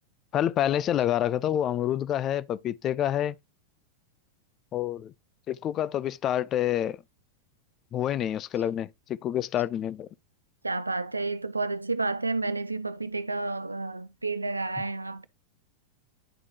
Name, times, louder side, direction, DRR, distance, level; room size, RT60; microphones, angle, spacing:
voice 1, 0.3-3.4 4.7-5.1 5.5-7.0 7.9-10.1, left 11 dB, 30° left, 0.4 m, -27 dB
voice 2, 10.6-15.3, right 3 dB, 80° right, 0.4 m, -30 dB
9.9 x 4.8 x 2.7 m
figure-of-eight pair, 90°, 0 cm